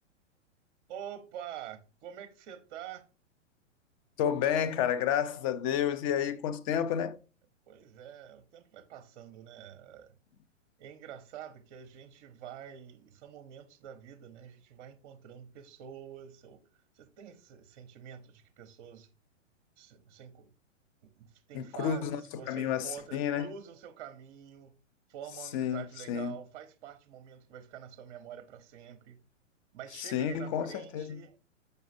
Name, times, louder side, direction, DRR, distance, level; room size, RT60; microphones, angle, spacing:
voice 1, 0.9-3.1 7.7-10.2 10.8-16.6 16.9-19.1 19.8-20.5 21.0-24.7 25.1-29.2 29.7-31.4, right 9 dB, 40° right, 0.7 m, -47 dB
voice 2, 4.2-7.2 21.5-22.2 22.5-23.5 25.5-26.3 30.0-31.2, left 9 dB, 30° left, 0.5 m, -30 dB
7.1 x 5.3 x 2.6 m
figure-of-eight pair, 110°, 38 cm